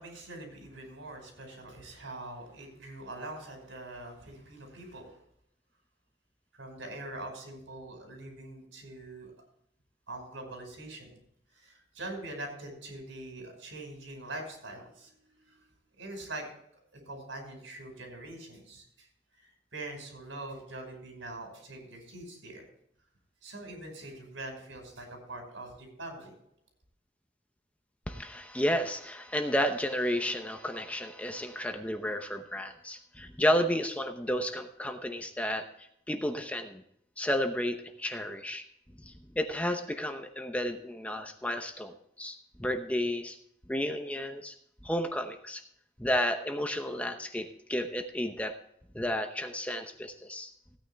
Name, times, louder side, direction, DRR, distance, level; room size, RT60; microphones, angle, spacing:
voice 1, 0.0-5.1 6.5-9.3 10.1-11.2 11.5-16.4 17.1-19.1 19.4-22.6 23.4-26.3, right 2 dB, 90° right, 3 dB, 5.4 m, -43 dB
voice 2, 28.1-35.7 36.1-36.8 37.2-38.6 39.0-43.4 43.7-44.5 44.8-45.6 46.0-48.5 48.9-50.5, equal, 5° left, 6 dB, 0.8 m, -32 dB
16.5 x 9.5 x 3.5 m, 0.73 s
head